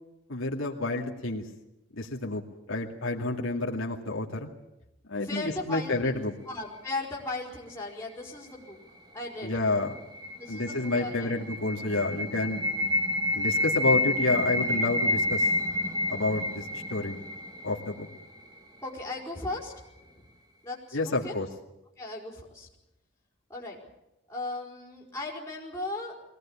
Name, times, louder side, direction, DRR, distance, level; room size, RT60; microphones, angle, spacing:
voice 1, 0.3-1.4 2.0-2.4 2.7-4.5 5.1-6.3 9.4-10.0 10.5-12.6 13.3-15.5 16.1-17.2 17.6-18.1 20.9-21.5, left 2 dB, 80° left, -1 dB, 2.4 m, -29 dB
voice 2, 5.1-8.8 9.1-9.5 10.4-11.3 18.8-19.7 20.6-21.3 22.0-22.7 23.5-23.8 24.3-26.1, left 2 dB, 15° left, -2 dB, 4.5 m, -37 dB
sound 1, 9.5-18.5, left 1 dB, 20° right, 2.4 m, -29 dB
22.0 x 18.0 x 8.8 m, 0.92 s
head